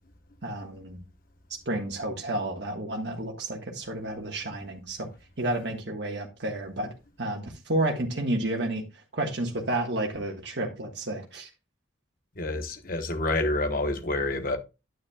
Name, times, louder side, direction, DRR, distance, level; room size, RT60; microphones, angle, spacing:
voice 1, 0.4-1.0 1.5-5.1 5.4-6.9 7.2-8.8 9.1-11.5, right 1 dB, 60° right, 1.5 m, -31 dB
voice 2, 12.4-14.6, left 2 dB, 45° left, 1.1 m, -28 dB
9.6 x 9.3 x 2.3 m
head